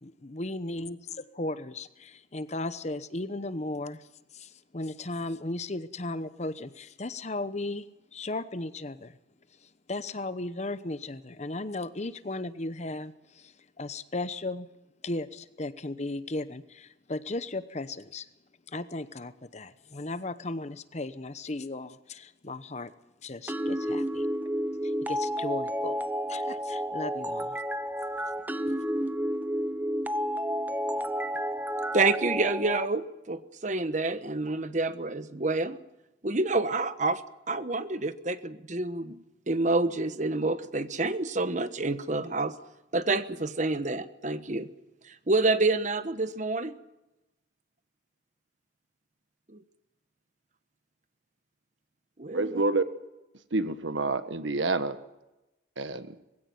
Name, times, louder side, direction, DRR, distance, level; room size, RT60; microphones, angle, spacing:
voice 1, 0.0-4.0 4.3-9.2 9.9-14.7 15.0-18.3 18.7-22.9 23.2-24.3 24.8-26.0 26.3-27.6, left 2 dB, 35° left, 13 dB, 0.9 m, -36 dB
sound 1, 23.5-32.9, equal, 10° right, 0.7 m, -31 dB
voice 2, 31.9-35.8 36.2-37.2 37.5-42.6 42.9-44.7 45.1-46.7 52.2-52.6, right 3 dB, 40° right, 12 dB, 1.2 m, -28 dB
voice 3, 52.3-52.8 53.5-55.0 55.8-56.1, right 3 dB, 75° right, 11 dB, 1.4 m, -28 dB
21.5 x 16.0 x 9.3 m, 0.97 s
head